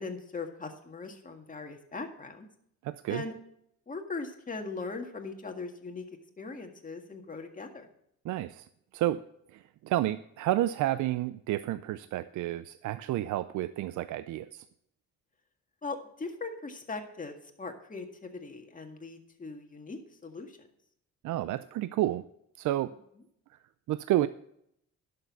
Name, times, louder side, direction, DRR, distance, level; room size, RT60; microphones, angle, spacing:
voice 1, 0.0-2.5 3.1-3.3 3.9-6.1 6.4-7.9 15.8-20.7, left 3 dB, 25° left, 4 dB, 1.9 m, -40 dB
voice 2, 2.8-3.2 8.3-8.7 8.9-9.2 9.5-14.6 21.2-22.2 22.6-22.9 23.9-24.3, right 14 dB, 75° right, 14 dB, 0.5 m, -30 dB
11.5 x 6.7 x 5.5 m, 0.73 s
cardioid pair, 90°, 30 cm